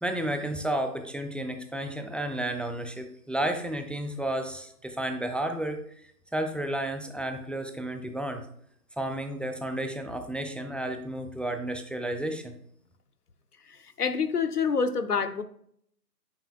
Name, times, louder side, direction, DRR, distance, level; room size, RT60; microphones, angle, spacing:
voice 1, 0.0-5.8 6.3-8.4 9.0-12.5, right 1 dB, ahead, 6 dB, 0.4 m, -32 dB
voice 2, 13.7-15.4, left 5 dB, 65° left, 10 dB, 0.8 m, -27 dB
8.8 x 6.4 x 2.2 m, 0.65 s
figure-of-eight pair, 165°, 50 cm